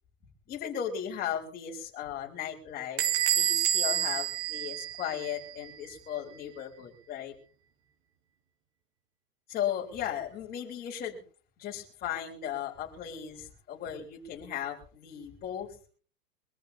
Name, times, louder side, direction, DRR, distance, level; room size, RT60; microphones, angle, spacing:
voice 1, 0.5-3.0 3.3-7.3 9.5-11.2 11.6-15.8, left 9 dB, 20° left, -1 dB, 3.8 m, -36 dB
Bell / Door, 3.0-5.5, right 10 dB, 25° right, 1.0 m, -28 dB
24.0 x 14.5 x 2.8 m, 0.39 s
supercardioid pair, 165°, 45 cm